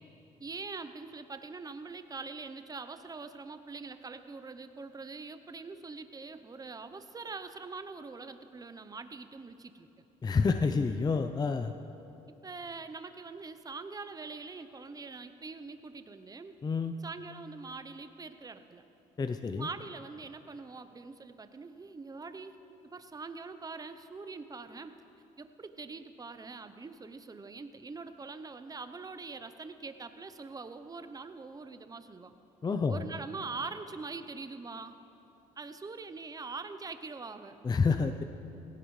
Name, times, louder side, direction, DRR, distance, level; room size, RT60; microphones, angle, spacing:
voice 1, 0.4-9.9 12.4-16.6 17.0-18.8 19.6-22.6 22.8-25.0 25.4-32.3 32.9-35.0 35.6-37.6, right 4 dB, 25° right, 10 dB, 0.7 m, -43 dB
voice 2, 10.2-11.7 16.6-16.9 19.2-19.7 32.6-33.0 37.6-38.2, left 4 dB, 25° left, 8 dB, 0.5 m, -28 dB
17.5 x 16.0 x 3.2 m, 3.0 s
supercardioid pair, 80°, 15 cm